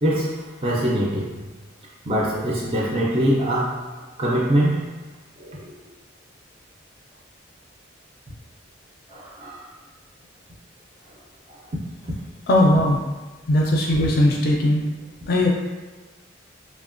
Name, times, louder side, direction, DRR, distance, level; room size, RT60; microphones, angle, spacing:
voice 1, 0.0-1.4 2.1-3.9 4.2-4.9 5.4-5.7 9.1-9.6, right 1 dB, 30° right, -4 dB, 0.3 m, -23 dB
voice 2, 12.5-13.0 13.5-14.8 15.3-15.5, left 1 dB, 50° left, -1 dB, 0.3 m, -18 dB
2.9 x 2.1 x 2.5 m, 1.3 s
head